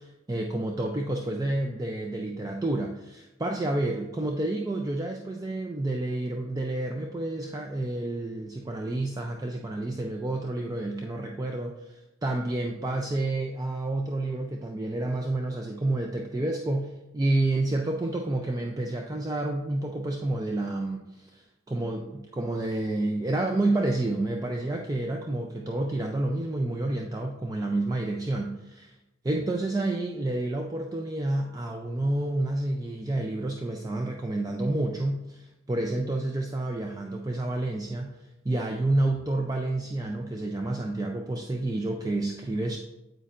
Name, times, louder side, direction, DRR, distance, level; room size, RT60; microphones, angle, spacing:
voice 1, 0.0-28.9 29.2-38.2 38.4-42.8, right 2 dB, 20° right, 2 dB, 0.4 m, -29 dB
8.3 x 8.1 x 2.5 m, 0.98 s
head